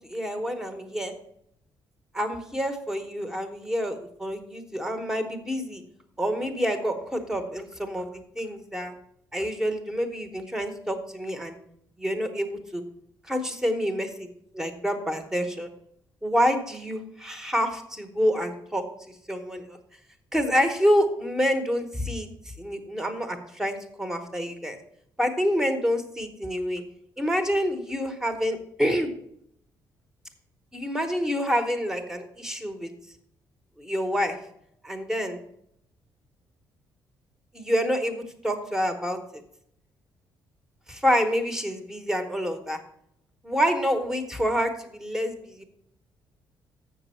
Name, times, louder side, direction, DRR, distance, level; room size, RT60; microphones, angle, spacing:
voice 1, 0.1-1.1 2.1-5.8 6.2-8.9 9.3-11.6 12.0-12.8 13.3-14.3 14.5-15.7 16.2-18.8 19.3-19.8 20.3-22.3 22.6-24.8 25.2-26.8 27.2-29.1 30.7-32.9 33.8-34.4 34.8-35.4 37.5-39.2 40.9-42.8 43.4-45.6, equal, 5° right, 6 dB, 1.0 m, -27 dB
7.9 x 6.1 x 5.6 m, 0.71 s
cardioid pair, 180°, 8 cm